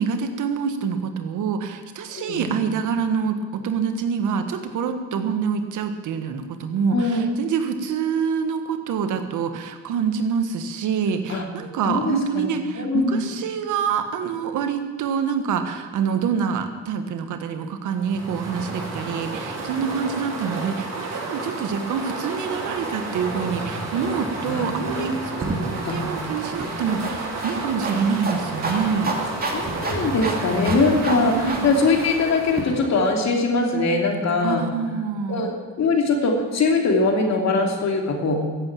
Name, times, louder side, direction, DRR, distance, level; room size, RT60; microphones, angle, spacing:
voice 1, 0.0-29.2 31.2-31.7 34.4-35.5, right 6 dB, 80° right, 7 dB, 1.5 m, -26 dB
voice 2, 2.1-2.4 6.9-7.3 11.3-11.4 11.9-12.5 12.8-13.2 24.5-25.3 25.8-26.0 29.5-34.6 35.3-38.4, left 3 dB, 65° left, 2 dB, 2.9 m, -22 dB
sound 1, 17.9-33.3, right 2 dB, 60° right, 5.0 m, -32 dB
sound 2, 25.4-32.6, right 2 dB, 30° right, 2.5 m, -31 dB
14.0 x 8.6 x 8.7 m, 1.4 s
cardioid pair, 90°, 30 cm